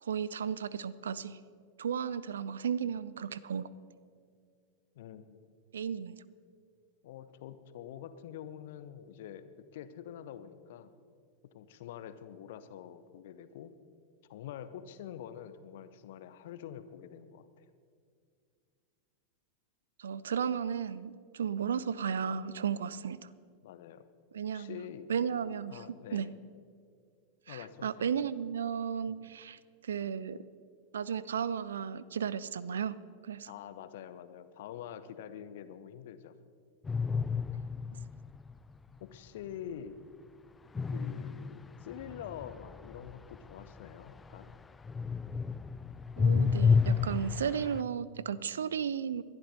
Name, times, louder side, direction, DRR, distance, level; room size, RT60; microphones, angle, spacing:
voice 1, 0.0-1.4 1.8-3.7 5.7-6.2 20.0-23.3 24.3-24.8 25.1-26.3 27.5-30.4 30.9-33.5 46.2-49.2, right 7 dB, 65° right, 19 dB, 0.4 m, -34 dB
voice 2, 4.9-5.5 7.0-10.9 11.5-13.7 14.3-17.6 23.6-24.1 24.5-25.1 25.7-26.3 27.5-27.9 29.1-29.3 33.5-36.4 39.0-40.0 40.9-44.5, left 9 dB, 55° left, 13 dB, 0.8 m, -46 dB
sound 1, 36.8-38.5 40.7-44.5 44.8-47.8, left 5 dB, 15° left, 0.3 m, -30 dB
21.0 x 11.5 x 4.1 m, 2.2 s
figure-of-eight pair, 90°, 0 cm